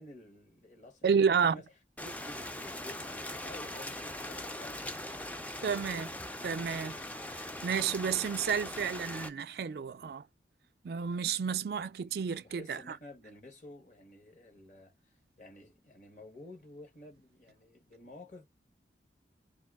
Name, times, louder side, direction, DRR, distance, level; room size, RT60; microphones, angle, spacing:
voice 1, 0.0-1.7 2.0-5.0 11.7-18.4, left 2 dB, 45° left, 1.2 m, -52 dB
voice 2, 1.0-1.6 5.6-6.2 6.4-7.0 7.4-10.2 10.8-12.8, right 6 dB, 65° right, 0.4 m, -31 dB
Rain, 2.0-9.3, left 1 dB, 10° left, 0.4 m, -41 dB
2.9 x 2.6 x 3.6 m
head